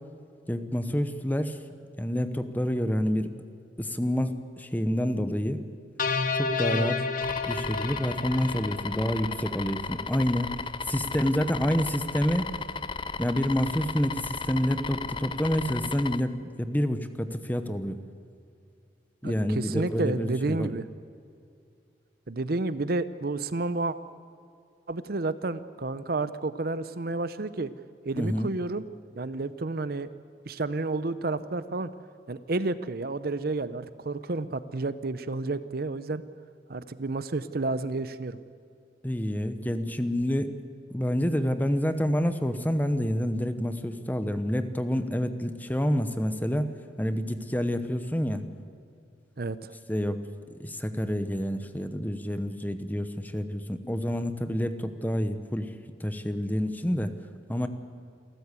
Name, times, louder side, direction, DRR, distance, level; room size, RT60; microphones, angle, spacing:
voice 1, 0.5-1.6 2.0-3.3 3.8-5.6 6.4-7.1 7.4-10.6 10.9-12.5 13.2-18.0 19.2-20.7 28.2-28.5 39.0-40.5 40.9-46.7 47.0-48.4 49.9-50.2 50.6-55.7 56.0-57.1 57.5-57.7, equal, 10° left, 10 dB, 1.0 m, -28 dB
sound 1, 6.0-9.3, left 4 dB, 50° left, 1.2 m, -30 dB
sound 2, 7.2-16.2, left 4 dB, 30° left, 0.5 m, -35 dB
voice 2, 19.2-20.9 22.3-24.0 24.9-27.7 28.0-28.8 29.2-30.1 30.5-31.9 32.3-36.2 36.7-38.4 49.4-49.7, right 3 dB, 55° right, 14 dB, 0.7 m, -30 dB
28.0 x 13.5 x 8.3 m, 2.4 s
head